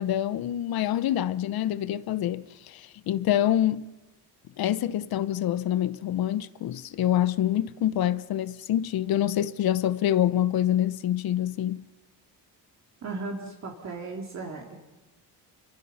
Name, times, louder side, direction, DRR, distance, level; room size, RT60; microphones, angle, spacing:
voice 1, 0.0-3.8 4.6-11.8, left 11 dB, 65° left, 0.8 m, -26 dB
voice 2, 13.0-14.8, right 3 dB, 45° right, 3.2 m, -36 dB
29.5 x 23.0 x 5.7 m
cardioid pair, 150°, 39 cm